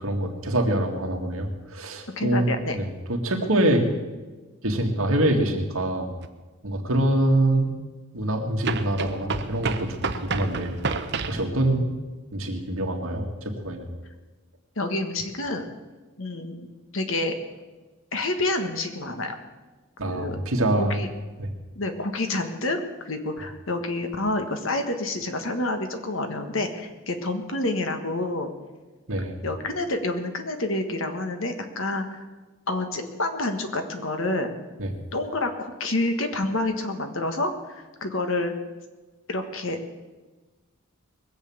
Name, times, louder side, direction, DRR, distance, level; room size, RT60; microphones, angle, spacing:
voice 1, 0.0-3.8 4.6-6.1 6.6-7.7 8.1-10.8 11.3-11.9 12.3-13.9 20.0-21.0 21.4-21.5 29.1-29.4 34.8-34.9, right 1 dB, 75° right, 2 dB, 2.1 m, -25 dB
voice 2, 2.2-2.8 14.8-15.6 16.2-16.7 16.9-17.3 18.1-19.3 20.1-20.4 20.7-21.1 21.7-28.5 29.4-32.2 32.7-34.5 35.1-38.5 39.3-39.8, left 2 dB, 65° left, 6 dB, 1.5 m, -28 dB
sound 1, 6.2-6.3 8.6-11.5, right 4 dB, 50° right, 0.8 m, -30 dB
21.0 x 7.6 x 7.2 m, 1.2 s
head